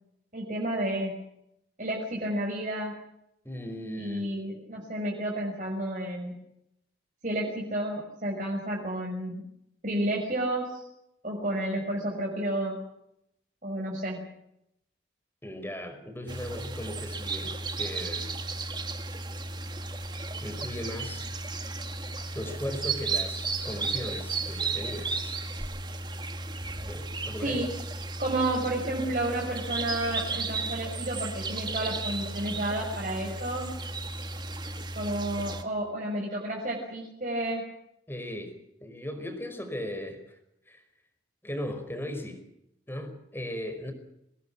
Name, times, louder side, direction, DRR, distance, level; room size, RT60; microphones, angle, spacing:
voice 1, 0.3-1.2 1.8-2.9 4.0-6.3 7.2-9.4 9.8-10.9 11.2-12.8 13.6-14.2 27.4-27.7 28.2-33.7 34.9-37.7, right 1 dB, 45° right, -2 dB, 6.3 m, -31 dB
voice 2, 3.4-4.3 15.4-18.4 20.4-21.3 22.3-25.4 26.7-27.7 38.1-40.4 40.7-40.8 41.4-42.4 42.9-43.9, left 1 dB, 10° left, 7 dB, 5.2 m, -37 dB
sound 1, 16.3-35.6, right 3 dB, 25° right, 2.1 m, -34 dB
26.0 x 19.5 x 7.3 m, 0.80 s
head